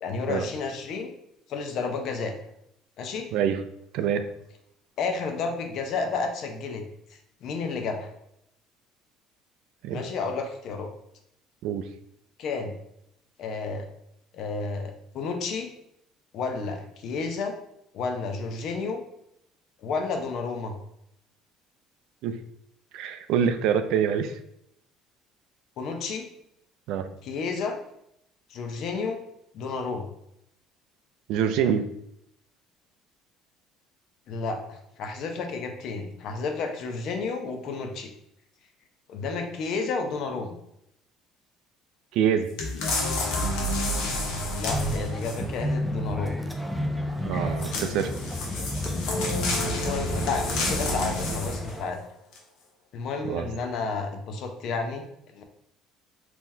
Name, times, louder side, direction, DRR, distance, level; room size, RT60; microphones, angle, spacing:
voice 1, 0.0-1.1 1.5-2.3 3.0-3.3 5.0-6.8 7.1-8.1 9.9-10.9 12.4-12.7 13.4-13.9 14.3-15.7 16.3-17.5 17.9-19.0 19.8-20.8 25.8-26.3 27.2-27.8 28.5-29.2 29.5-30.1 34.3-38.1 39.1-40.6 44.5-46.5 47.3-47.6 49.5-52.0 52.9-55.4, left 4 dB, 60° left, 4 dB, 0.6 m, -31 dB
voice 2, 3.9-4.3 9.8-10.0 11.6-11.9 22.2-22.4 22.9-24.4 26.9-27.1 31.3-31.9 42.1-42.5 47.2-48.1 53.2-53.5, right 8 dB, 75° right, 9 dB, 0.3 m, -25 dB
sound 1, 42.6-45.6 47.6-51.8 52.3-52.4, left 1 dB, 80° left, 0.9 m, -29 dB
sound 2, 44.7-51.8, equal, ahead, 0.4 m, -32 dB
3.7 x 2.9 x 2.7 m, 0.77 s
cardioid pair, 120°, 0 cm